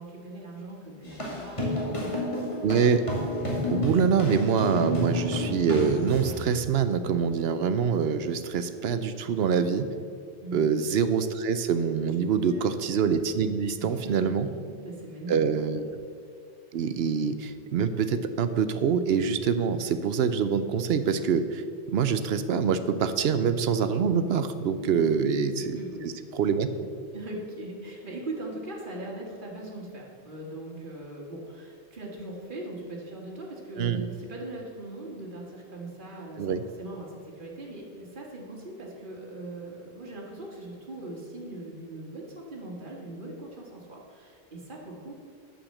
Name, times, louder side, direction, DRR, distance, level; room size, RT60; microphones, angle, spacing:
voice 1, 0.0-2.4 10.4-10.7 12.5-12.6 13.8-15.4 15.8-15.9 24.8-26.0 27.1-45.1, right 2 dB, 45° right, -2 dB, 1.9 m, -40 dB
sound 1, 1.0-6.4, left 1 dB, 30° left, 2.2 m, -30 dB
voice 2, 2.6-3.0 3.7-9.9 10.5-14.5 15.3-15.8 16.7-21.6 21.9-25.8 26.0-26.7 33.8-34.0 36.4-36.6, right 6 dB, 65° right, 11 dB, 0.9 m, -25 dB
8.8 x 7.1 x 6.5 m, 2.3 s
omnidirectional pair, 1.2 m